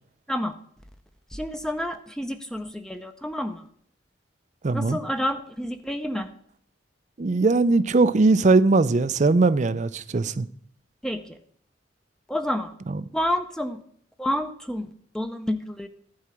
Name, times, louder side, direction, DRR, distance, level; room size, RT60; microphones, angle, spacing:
voice 1, 1.3-3.6 4.7-6.3 11.0-11.4 12.3-12.7 13.1-13.8 14.2-15.9, left 1 dB, 5° left, 0.6 m, -29 dB
voice 2, 4.6-5.0 7.2-10.5 12.9-13.0, right 3 dB, 40° right, 0.5 m, -20 dB
11.5 x 4.8 x 7.4 m
head